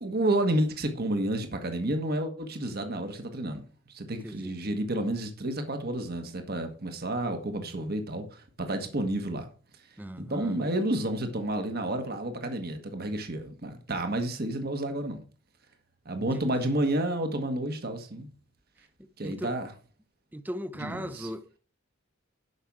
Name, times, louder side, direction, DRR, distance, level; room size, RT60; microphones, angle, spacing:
voice 1, 0.0-3.6 3.9-9.5 10.2-15.2 16.0-18.3 19.2-19.7 20.8-21.3, right 1 dB, 50° right, 1.5 m, -30 dB
voice 2, 4.1-4.5 10.0-10.6 16.2-16.4 19.0-19.5 20.3-21.6, equal, 10° right, 0.6 m, -39 dB
11.0 x 5.9 x 4.9 m
head